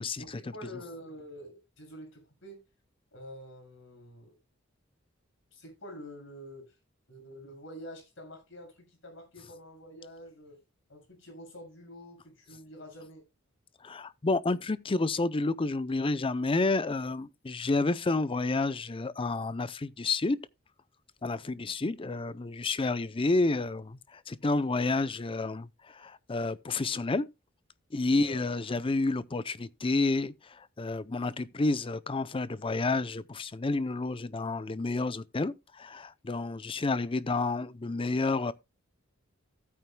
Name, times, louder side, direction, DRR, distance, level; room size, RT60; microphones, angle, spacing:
voice 1, 0.2-2.6 3.1-4.4 5.5-6.8 7.1-10.6 10.9-13.2 21.2-21.6 28.1-28.5, equal, 65° left, 6.7 m, -47 dB
voice 2, 13.8-20.4 21.2-27.3 27.9-38.5, left 3 dB, 25° left, 0.5 m, -30 dB
15.0 x 9.2 x 2.2 m
head